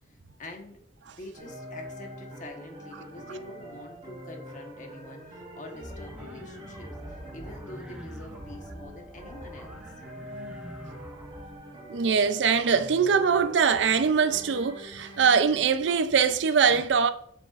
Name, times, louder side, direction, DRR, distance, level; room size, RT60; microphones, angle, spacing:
voice 1, 0.1-0.8 1.1-9.8, left 1 dB, 45° left, 1.2 m, -45 dB
sound 1, 1.3-15.4, equal, 35° right, 1.5 m, -44 dB
sound 2, 5.8-11.6, equal, 5° right, 0.8 m, -45 dB
voice 2, 11.9-17.1, right 6 dB, 75° right, 0.5 m, -23 dB
6.9 x 6.4 x 2.5 m
head